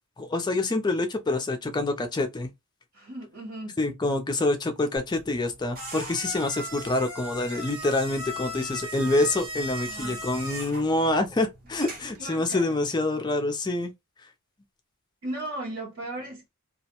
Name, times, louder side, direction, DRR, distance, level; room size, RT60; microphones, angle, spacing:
voice 1, 0.2-2.5 3.8-13.9, left 2 dB, 20° left, 0.3 m, -26 dB
voice 2, 2.9-3.8 9.9-10.2 11.8-12.8 15.2-16.5, right 1 dB, 70° right, 0.9 m, -37 dB
sound 1, 5.0-12.2, equal, 40° right, 0.8 m, -38 dB
2.3 x 2.0 x 2.8 m
head